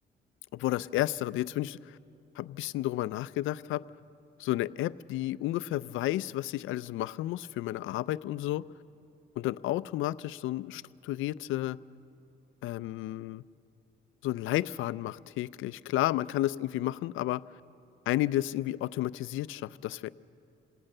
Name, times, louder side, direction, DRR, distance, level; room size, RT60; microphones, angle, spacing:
voice 1, 0.5-2.0 2.4-3.8 4.4-8.6 9.4-11.8 12.6-13.4 14.2-17.4 18.1-20.1, left 15 dB, 85° left, 18 dB, 0.5 m, -32 dB
27.0 x 18.0 x 6.6 m, 2.6 s
cardioid pair, 90°, 20 cm